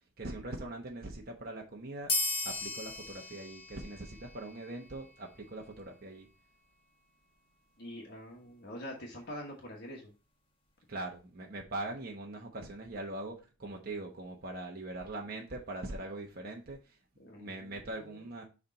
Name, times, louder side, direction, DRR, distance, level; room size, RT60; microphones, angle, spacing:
voice 1, 0.2-2.1 2.4-6.3 10.9-16.8 17.4-18.4, right 2 dB, 45° right, 1.1 m, -41 dB
sound 1, 2.1-5.1, left 2 dB, 25° left, 1.2 m, -36 dB
voice 2, 7.8-10.1 17.2-18.3, left 1 dB, 55° left, 1.3 m, -45 dB
6.6 x 3.5 x 4.1 m
head